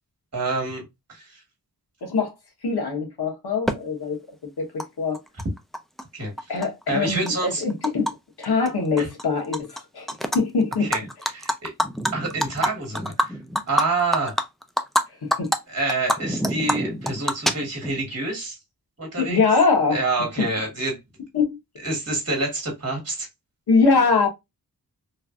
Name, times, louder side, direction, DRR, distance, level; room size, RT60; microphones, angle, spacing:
voice 1, 0.3-0.8 1.1-1.4 6.1-6.5 6.9-7.6 9.0-9.1 10.8-11.0 11.3-11.7 12.1-13.4 13.7-14.4 15.7-18.6 19.0-19.4 19.9-21.0 21.8-23.3, right 2 dB, 40° right, 1.4 m, -27 dB
voice 2, 2.0-2.3 2.6-4.2 4.6-5.2 6.5-8.1 8.4-10.1 10.3-10.9 15.2-15.5 19.2-20.0 21.3-21.6 23.7-24.3, left 4 dB, 80° left, 1.1 m, -22 dB
Animal, 3.7-3.8 4.8-4.9 5.1-6.0 6.4-8.1 8.4-8.7 9.0-9.8 10.1-10.4 10.7-15.0 15.3-15.6 15.9-18.0, equal, ahead, 0.3 m, -25 dB
3.1 x 2.5 x 2.3 m
wide cardioid pair, 90°, 39 cm